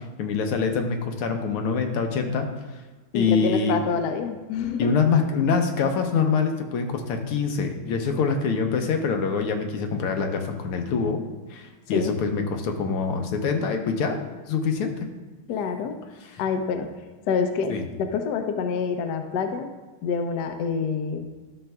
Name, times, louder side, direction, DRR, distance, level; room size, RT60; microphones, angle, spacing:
voice 1, 0.0-2.5 3.1-3.8 4.8-11.2 11.5-14.2 14.5-15.1 16.3-16.4 17.7-17.8, left 5 dB, 85° left, 4 dB, 1.7 m, -25 dB
voice 2, 3.1-4.9 11.9-12.2 15.5-16.0 16.4-19.7 20.0-21.3, left 5 dB, 70° left, 6 dB, 1.0 m, -27 dB
12.0 x 6.5 x 2.3 m, 1.3 s
omnidirectional pair, 2.4 m